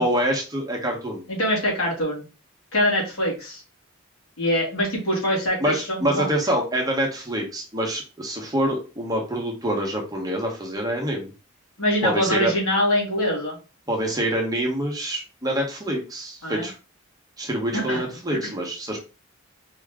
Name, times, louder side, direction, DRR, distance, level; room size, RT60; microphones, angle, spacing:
voice 1, 0.0-1.2 5.6-11.3 12.0-12.5 13.9-16.7 17.4-19.0, right 1 dB, 15° right, 0 dB, 1.0 m, -26 dB
voice 2, 1.3-2.3 2.7-3.6 4.4-6.3 11.8-13.6 16.4-16.7 17.7-18.4, equal, 80° left, -1 dB, 2.3 m, -24 dB
4.6 x 2.9 x 3.6 m, 0.32 s
head